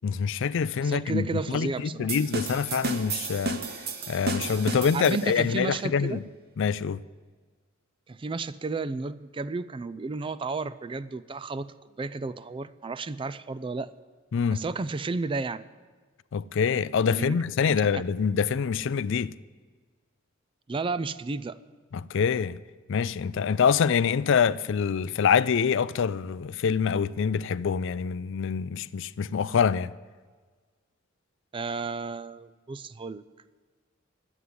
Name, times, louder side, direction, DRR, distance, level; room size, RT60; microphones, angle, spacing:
voice 1, 0.0-3.6 4.1-6.2 6.6-7.0 14.3-14.6 16.3-19.3 21.9-22.6 22.9-29.9, left 6 dB, 65° left, 0.4 m, -25 dB
voice 2, 0.8-2.1 4.9-6.2 8.1-13.9 14.5-15.6 17.0-17.4 17.8-18.0 20.7-21.6 31.5-33.2, right 3 dB, 25° right, 0.4 m, -32 dB
sound 1, 2.1-5.5, right 2 dB, 50° right, 1.2 m, -32 dB
11.5 x 8.3 x 9.3 m
head